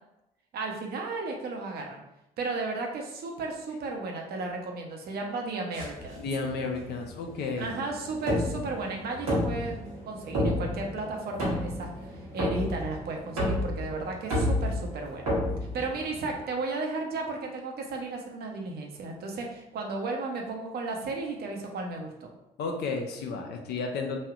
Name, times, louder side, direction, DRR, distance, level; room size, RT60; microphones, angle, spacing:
voice 1, 0.5-2.0 2.4-6.3 7.6-11.9 12.3-15.3 15.7-22.3, right 3 dB, 60° right, 2 dB, 0.7 m, -34 dB
sound 1, 5.7-16.4, left 1 dB, 90° right, 1.1 m, -31 dB
voice 2, 6.2-7.7 22.6-24.2, left 4 dB, 65° left, 3 dB, 0.6 m, -32 dB
sound 2, 7.0-15.6, left 1 dB, 15° left, 0.5 m, -49 dB
3.1 x 2.7 x 2.4 m, 0.86 s
hypercardioid pair, 50°, 19 cm